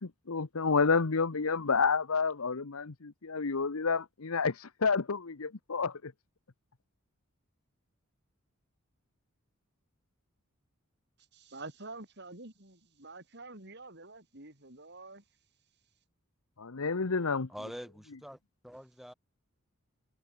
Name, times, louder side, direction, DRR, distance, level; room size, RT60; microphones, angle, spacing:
voice 1, 0.0-6.1 16.6-17.5, left 4 dB, 80° left, 1.0 m, -30 dB
voice 2, 11.3-15.2, right 2 dB, 50° right, 6.5 m, -47 dB
voice 3, 17.5-19.1, equal, ahead, 6.4 m, -45 dB
head